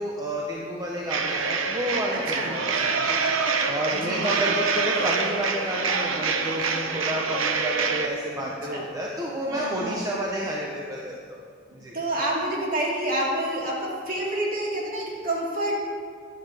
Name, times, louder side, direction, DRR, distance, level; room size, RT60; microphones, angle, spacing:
voice 1, 0.0-3.3 3.7-11.4 11.7-12.0, equal, 15° right, -3 dB, 0.9 m, -30 dB
sound 1, 1.1-8.1, right 4 dB, 85° right, 0.8 m, -26 dB
voice 2, 2.1-2.5 3.9-4.6 8.7-8.8 9.5-10.0 11.9-15.8, right 1 dB, 45° right, -4 dB, 2.4 m, -28 dB
13.0 x 10.5 x 3.5 m, 2.2 s
head